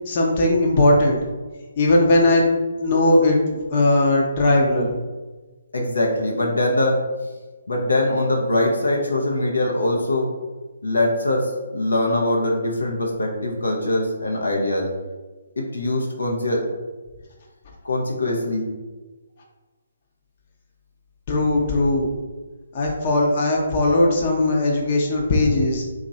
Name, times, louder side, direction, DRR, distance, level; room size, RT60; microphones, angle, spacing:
voice 1, 0.1-1.2 1.8-2.4 2.8-4.9 21.3-22.1 22.7-25.8, left 2 dB, 40° left, -1 dB, 0.7 m, -18 dB
voice 2, 5.7-7.0 7.7-10.3 10.8-14.9 15.6-16.6 17.8-18.6, left 1 dB, 80° left, -1 dB, 0.6 m, -22 dB
3.0 x 2.5 x 3.9 m, 1.3 s
figure-of-eight pair, 140°, 0 cm